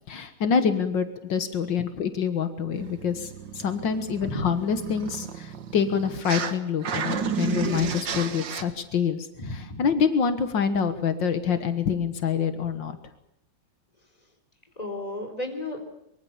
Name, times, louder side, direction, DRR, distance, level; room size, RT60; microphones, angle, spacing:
voice 1, 0.1-13.0, left 6 dB, 80° left, 9 dB, 2.1 m, -26 dB
sound 1, 2.7-6.5 6.8-8.6, right 6 dB, 75° right, 2.2 m, -32 dB
voice 2, 9.4-9.8 14.8-15.8, left 1 dB, 20° left, 5 dB, 4.1 m, -33 dB
24.0 x 23.0 x 7.3 m, 0.76 s
omnidirectional pair, 2.0 m